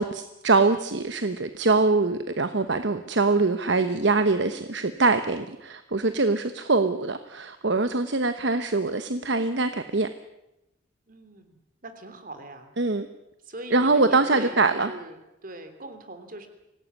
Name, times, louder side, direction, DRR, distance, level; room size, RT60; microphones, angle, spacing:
voice 1, 0.0-10.1 12.8-13.1 13.7-14.9, right 3 dB, 60° right, 10 dB, 1.1 m, -23 dB
voice 2, 11.1-11.6 11.8-12.7 13.4-16.5, right 1 dB, 45° right, 8 dB, 3.2 m, -41 dB
25.0 x 17.5 x 9.6 m, 0.94 s
head